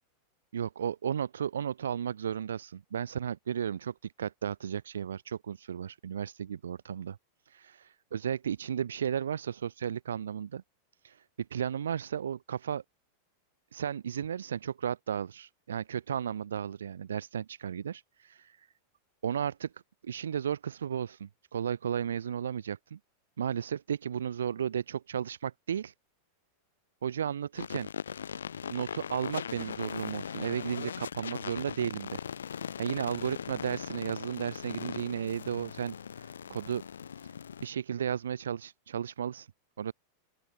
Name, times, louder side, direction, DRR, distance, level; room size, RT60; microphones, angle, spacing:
voice 1, 0.5-7.2 7.5-10.6 11.0-11.2 11.5-12.8 13.7-18.7 19.2-19.7 20.0-23.0 23.4-25.9 27.0-27.9 28.7-32.2 32.5-36.8 37.2-37.3 37.6-39.5 39.8-39.9, right 8 dB, 65° right, 4.1 m, -34 dB
sound 1, 27.5-37.7, left 7 dB, 70° left, 7.0 m, -40 dB
open air
figure-of-eight pair, 90°, 0 cm